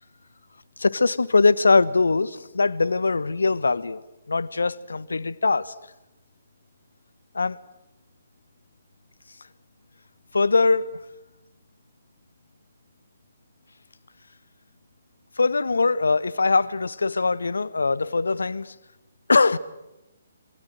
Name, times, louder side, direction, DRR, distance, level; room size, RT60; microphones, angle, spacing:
voice 1, 0.8-4.0 4.3-5.7 7.3-7.6 10.3-11.0 15.4-18.7 19.3-19.6, left 3 dB, 65° left, 1.3 m, -22 dB
28.0 x 27.0 x 7.8 m
figure-of-eight pair, 135°, 0 cm